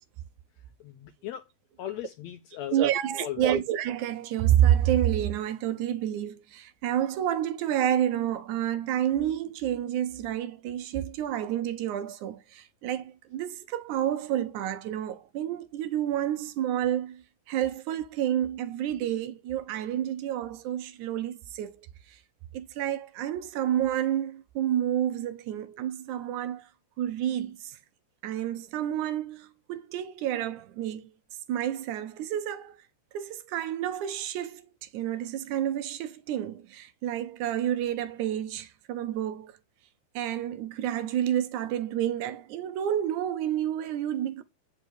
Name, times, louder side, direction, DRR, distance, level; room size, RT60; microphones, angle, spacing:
voice 1, 0.8-1.5 1.8-2.8 3.2-3.5, left 12 dB, 80° left, 1.6 m, -37 dB
voice 2, 2.7-21.7 22.1-22.2 22.5-26.7 27.0-27.8 28.2-31.1 31.5-32.8 33.1-39.6 40.2-44.4, right 11 dB, 75° right, 1.9 m, -29 dB
8.5 x 5.5 x 4.6 m
omnidirectional pair, 3.7 m